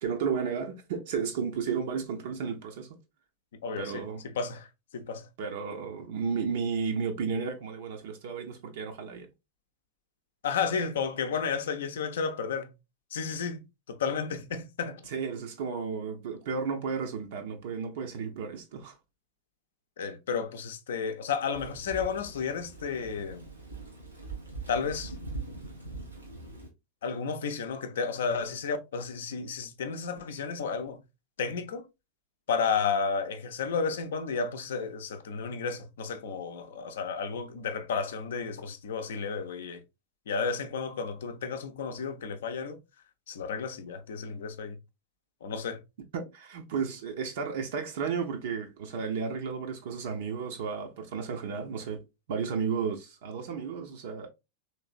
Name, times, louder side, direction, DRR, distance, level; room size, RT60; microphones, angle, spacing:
voice 1, 0.0-3.0 3.8-4.3 5.4-9.3 15.1-19.0 46.1-52.0 52.3-54.3, right 6 dB, 55° right, 0.6 m, -33 dB
voice 2, 3.6-4.0 4.3-4.7 4.9-5.3 10.4-12.7 13.1-15.0 20.0-23.4 24.7-25.1 27.0-31.0 31.4-31.9 32.5-39.8 40.3-42.8 43.3-44.8 45.4-45.8, left 5 dB, 60° left, 0.5 m, -32 dB
Thunder / Rain, 21.5-26.7, right 3 dB, 80° right, 1.0 m, -42 dB
3.2 x 3.1 x 2.4 m
figure-of-eight pair, 90°, 0 cm